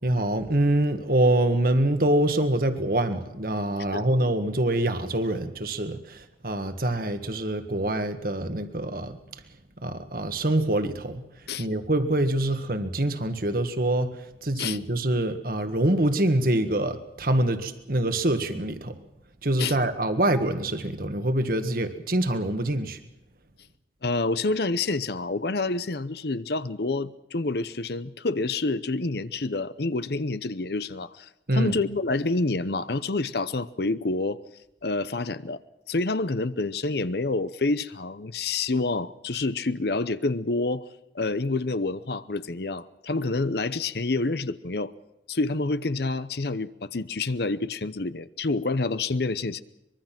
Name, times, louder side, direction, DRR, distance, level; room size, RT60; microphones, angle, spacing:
voice 1, 0.0-9.2 9.8-11.2 11.6-18.9 19.4-23.0 31.5-31.7, right 1 dB, 50° right, 1.7 m, -25 dB
voice 2, 24.0-34.4 34.8-35.6 35.9-40.9 41.1-44.9 45.3-49.6, left 3 dB, 60° left, 0.8 m, -28 dB
24.0 x 22.5 x 6.0 m
head